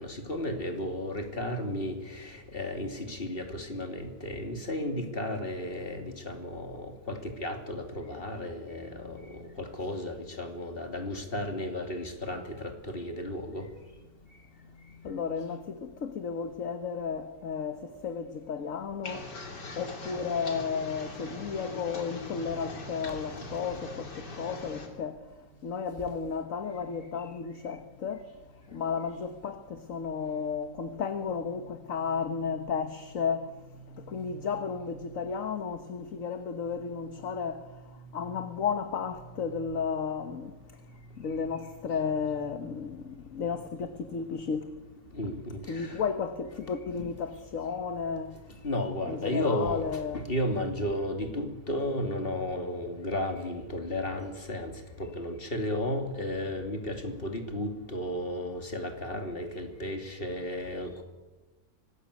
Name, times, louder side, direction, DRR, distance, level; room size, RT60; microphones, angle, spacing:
voice 1, 0.0-13.7 14.7-15.5 23.0-23.1 23.4-23.5 29.9-30.3 31.9-32.7 33.8-34.5 35.0-35.2 37.9-38.4 41.5-41.6 45.1-46.0 47.0-47.1 48.6-61.0, left 1 dB, 35° left, 3.1 m, -34 dB
voice 2, 15.0-19.3 19.8-25.2 25.6-28.2 28.7-33.5 34.1-37.6 38.1-40.5 41.2-44.8 45.7-48.3 49.1-50.3, left 6 dB, 55° left, 1.5 m, -33 dB
sound 1, 19.0-24.9, left 2 dB, 85° left, 3.8 m, -41 dB
25.0 x 19.0 x 8.4 m
omnidirectional pair, 1.8 m